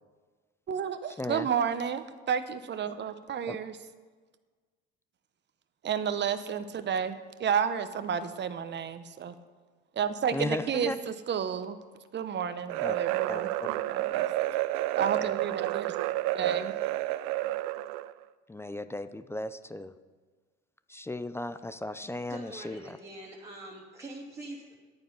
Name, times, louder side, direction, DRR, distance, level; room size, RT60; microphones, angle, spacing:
voice 1, 0.7-3.8 5.8-9.3 10.0-11.8 12.1-13.5 13.9-14.2 15.0-15.9 16.3-16.7, right 7 dB, 35° right, 11 dB, 0.9 m, -31 dB
voice 2, 1.2-1.5 3.5-3.6 10.3-11.0 12.8-13.0 13.3-13.8 18.5-19.9 20.9-23.0, left 1 dB, 10° left, 13 dB, 0.4 m, -36 dB
sound 1, 12.7-18.1, right 15 dB, 70° right, 0.5 m, -30 dB
voice 3, 22.3-24.7, right 1 dB, 10° right, -4 dB, 2.6 m, -44 dB
10.5 x 9.2 x 5.5 m, 1.4 s
hypercardioid pair, 75°, 33 cm